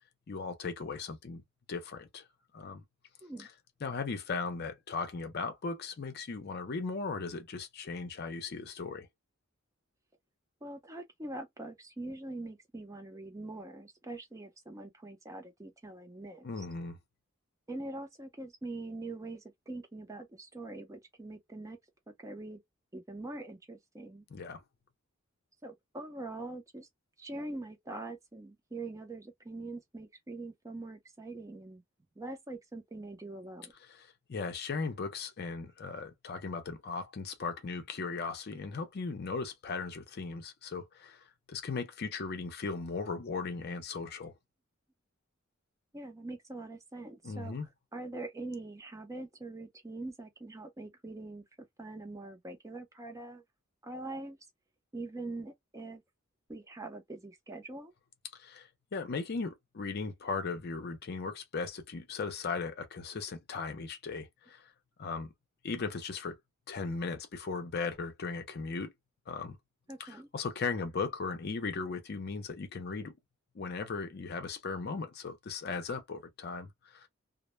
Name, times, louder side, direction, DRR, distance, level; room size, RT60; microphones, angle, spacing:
voice 1, 0.3-2.3 2.5-2.8 3.4-3.5 3.8-9.1 16.4-17.0 24.3-24.6 33.9-44.3 47.2-47.7 58.3-64.7 65.0-65.3 65.6-66.4 66.7-68.9 69.3-69.6 70.0-73.1 73.5-77.1, left 4 dB, 50° left, 0.5 m, -37 dB
voice 2, 10.6-16.7 17.7-21.8 22.1-22.6 22.9-24.2 25.6-26.9 27.2-31.8 32.2-33.7 45.9-47.6 47.9-53.4 53.8-54.4 54.9-56.0 56.5-57.9 69.9-70.3, right 2 dB, 15° right, 0.5 m, -43 dB
2.1 x 2.0 x 3.0 m
head